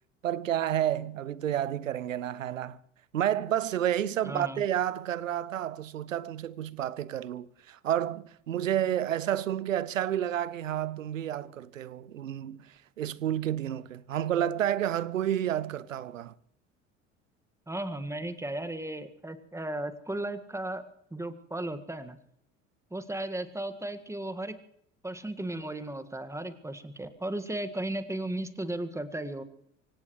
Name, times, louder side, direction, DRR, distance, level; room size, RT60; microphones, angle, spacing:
voice 1, 0.2-2.8 3.1-16.3, right 11 dB, 85° right, 0.7 m, -30 dB
voice 2, 4.2-4.6 17.7-20.9 21.1-22.2 22.9-24.6 25.0-29.4, right 1 dB, 10° right, 1.7 m, -35 dB
24.5 x 18.0 x 3.2 m
hypercardioid pair, 65°, 38 cm